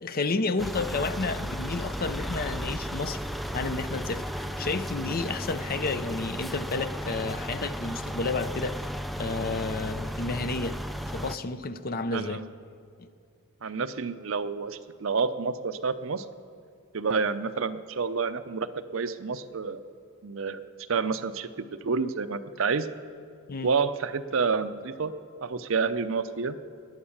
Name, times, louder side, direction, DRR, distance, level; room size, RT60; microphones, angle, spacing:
voice 1, 0.0-3.2 3.5-8.9 9.2-10.8 11.1-12.4 13.0-13.1 23.5-23.7, left 3 dB, 45° left, 0.6 m, -31 dB
sound 1, 0.6-11.4, equal, ahead, 0.4 m, -34 dB
voice 2, 12.1-12.5 13.6-16.2 16.9-18.7 18.9-19.8 20.2-20.6 20.9-22.9 23.6-25.1 25.4-26.6, right 5 dB, 65° right, 0.6 m, -29 dB
20.0 x 8.8 x 7.2 m
head